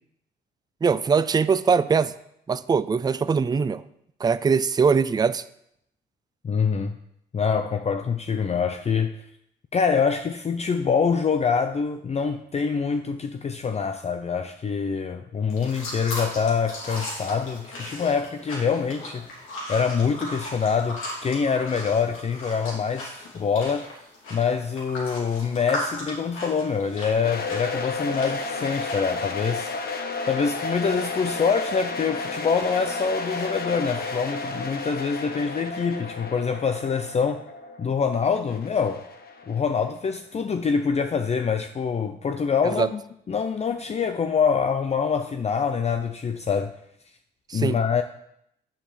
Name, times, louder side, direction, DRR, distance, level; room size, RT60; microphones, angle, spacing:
voice 1, 0.8-2.1 2.5-3.8 4.2-5.4 42.7-42.9 47.5-48.0, right 5 dB, 20° right, 0.4 m, -22 dB
voice 2, 6.4-7.0 7.3-9.1 9.7-23.9 24.3-29.7 30.3-37.4 37.8-39.0 39.5-43.0 43.3-46.7 47.5-48.0, left 6 dB, 35° left, 0.5 m, -25 dB
sound 1, 15.5-29.5, left 1 dB, 85° left, 3.0 m, -37 dB
sound 2, 27.2-40.1, left 3 dB, 50° left, 1.3 m, -32 dB
7.4 x 5.8 x 6.7 m
cardioid pair, 90°, 20 cm